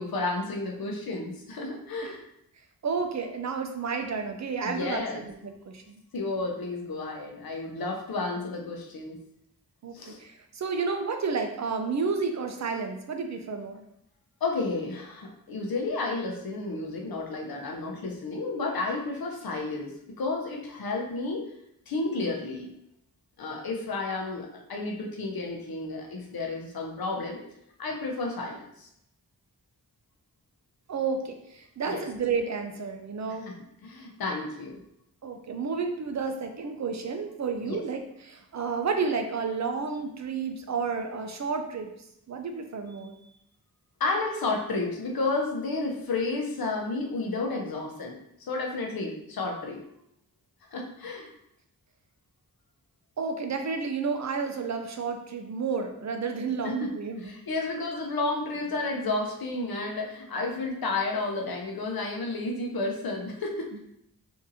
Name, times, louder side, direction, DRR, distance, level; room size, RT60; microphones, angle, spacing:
voice 1, 0.0-2.2 4.6-5.2 6.1-9.2 9.9-10.2 14.4-21.5 21.9-22.7 23.4-27.4 27.8-28.9 31.9-32.0 33.8-34.8 37.6-37.8 44.0-48.2 48.5-49.8 50.7-51.3 56.6-56.9 57.2-63.8, left 3 dB, 70° left, 0 dB, 0.7 m, -31 dB
voice 2, 2.8-6.0 9.8-13.8 30.9-33.5 35.2-41.9 42.3-43.1 53.2-57.3 60.6-60.7 63.7-63.8, right 5 dB, 50° right, 5 dB, 0.5 m, -31 dB
3.8 x 2.7 x 2.7 m, 0.77 s
wide cardioid pair, 75°, 37 cm